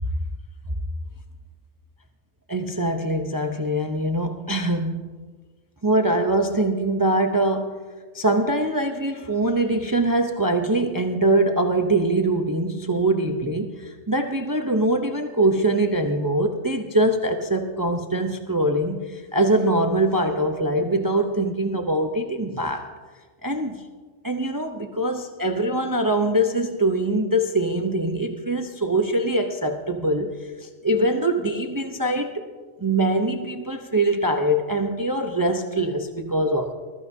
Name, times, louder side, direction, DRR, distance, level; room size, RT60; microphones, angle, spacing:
voice 1, 2.5-5.0 5.8-7.8 8.1-22.9 23.4-23.8 24.2-32.5 32.8-36.7, right 1 dB, 20° right, 5 dB, 0.6 m, -23 dB
20.0 x 14.0 x 2.7 m, 1.4 s
omnidirectional pair, 1.2 m